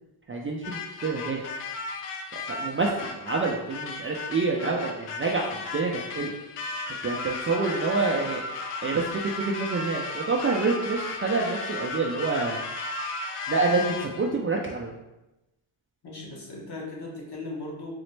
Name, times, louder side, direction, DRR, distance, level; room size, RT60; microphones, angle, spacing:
voice 1, 0.3-1.4 2.5-6.3 6.9-8.4 8.8-12.6 13.5-14.9, right 3 dB, 30° right, -1 dB, 0.3 m, -27 dB
sound 1, 0.6-14.3, left 3 dB, 90° left, 0.6 m, -35 dB
voice 2, 16.0-17.9, left 2 dB, 50° left, -3 dB, 1.2 m, -38 dB
4.0 x 2.0 x 3.1 m, 0.95 s
cardioid pair, 70°, 50 cm